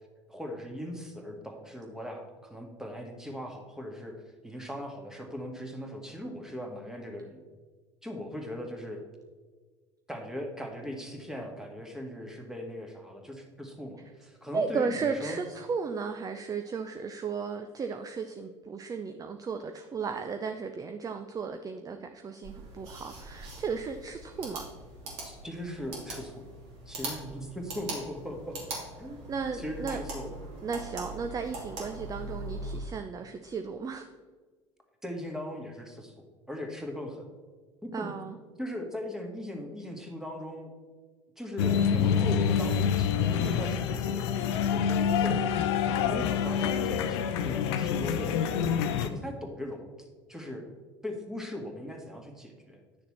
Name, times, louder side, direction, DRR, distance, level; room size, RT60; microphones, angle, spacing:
voice 1, 0.3-7.4 8.0-9.0 10.1-15.4 25.2-26.4 26.9-28.6 29.0-29.2 29.5-30.3 35.0-36.2 36.5-37.2 37.8-38.1 38.6-40.7 41.4-45.6 46.0-48.7 49.0-50.7 51.0-52.8, left 1 dB, 5° right, 2 dB, 1.8 m, -39 dB
voice 2, 14.5-24.7 29.3-30.0 30.6-34.1 37.9-38.4, right 5 dB, 25° right, 7 dB, 0.6 m, -35 dB
sound 1, 22.4-32.8, right 2 dB, 65° right, 2.6 m, -41 dB
sound 2, 41.6-49.1, left 7 dB, 60° left, 0.6 m, -27 dB
10.5 x 6.6 x 4.2 m, 1.4 s
figure-of-eight pair, 65°, 16 cm